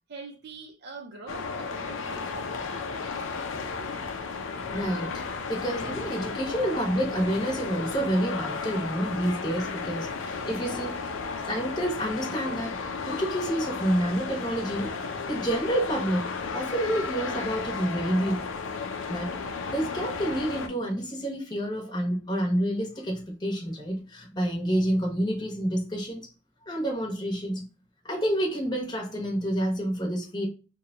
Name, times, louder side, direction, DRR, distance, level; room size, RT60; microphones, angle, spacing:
voice 1, 0.1-2.3, right 4 dB, 60° right, 0.5 m, -43 dB
sound 1, 1.3-20.7, left 4 dB, 85° left, 0.5 m, -34 dB
voice 2, 4.7-11.0 11.4-14.9 15.3-18.5 19.1-19.3 19.7-26.3 26.7-27.7 28.0-30.5, right 1 dB, 25° left, 0.9 m, -29 dB
2.9 x 2.2 x 3.7 m
head